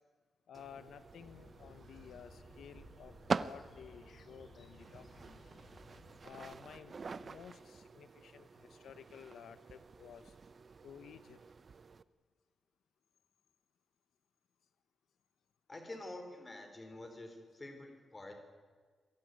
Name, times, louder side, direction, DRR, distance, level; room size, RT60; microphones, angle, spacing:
voice 1, 0.5-5.6 6.2-10.3 10.8-11.4, left 8 dB, 85° left, 13 dB, 1.0 m, -54 dB
sound 1, 0.5-12.0, right 4 dB, 35° right, 0.7 m, -45 dB
sound 2, 0.9-7.4, right 4 dB, 50° right, 5.3 m, -62 dB
sound 3, 1.2-6.2, left 3 dB, 40° left, 2.0 m, -60 dB
voice 2, 15.7-18.4, left 2 dB, 20° left, 6 dB, 4.0 m, -48 dB
26.0 x 18.5 x 9.5 m, 1.5 s
wide cardioid pair, 175°, 0 cm